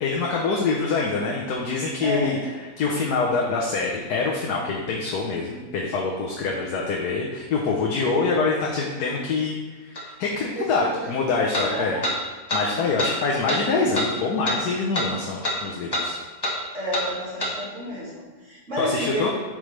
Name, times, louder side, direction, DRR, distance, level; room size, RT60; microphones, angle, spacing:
voice 1, 0.0-12.0 12.5-16.2 18.8-19.3, left 4 dB, 85° left, -2 dB, 1.4 m, -25 dB
voice 2, 2.0-2.4 10.5-11.1 11.5-12.1 12.6-12.8 16.7-19.3, equal, 50° right, -7 dB, 2.4 m, -31 dB
sound 1, 10.0-10.1 11.5-11.7 12.0-12.2 12.5-12.6 13.0-13.1 13.5-13.6 13.9-14.1 14.5-14.6 14.9-15.1 15.4-15.6 15.9-16.1 16.4-16.6 16.9-17.1 17.4-17.5, left 1 dB, 20° left, 0.9 m, -25 dB
9.0 x 5.0 x 3.3 m, 1.3 s
omnidirectional pair, 1.6 m